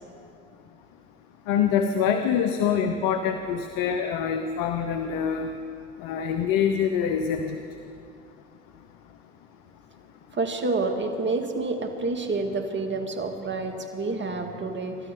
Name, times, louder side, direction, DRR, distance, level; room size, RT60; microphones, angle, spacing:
voice 1, 1.5-5.5 6.0-7.6, left 7 dB, 70° left, 6 dB, 1.0 m, -25 dB
voice 2, 10.3-15.0, right 3 dB, 30° right, 4 dB, 2.1 m, -28 dB
27.0 x 12.5 x 3.9 m, 2.7 s
hypercardioid pair, 70°, 35 cm